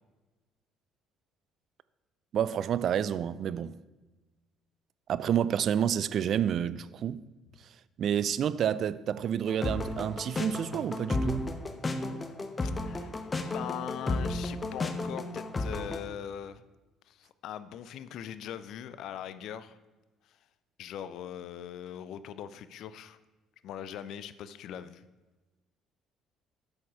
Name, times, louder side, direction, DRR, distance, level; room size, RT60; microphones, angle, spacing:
voice 1, 2.3-3.8 5.1-7.2 8.0-11.6, right 9 dB, 55° right, 0.3 m, -29 dB
sound 1, 9.5-16.0, left 2 dB, 25° left, 1.0 m, -33 dB
voice 2, 12.6-13.2 13.5-16.6 17.1-19.8 20.3-20.4 20.8-23.2 23.6-25.0, left 9 dB, 60° left, 0.5 m, -41 dB
8.2 x 6.9 x 4.8 m
hypercardioid pair, 55°, 0 cm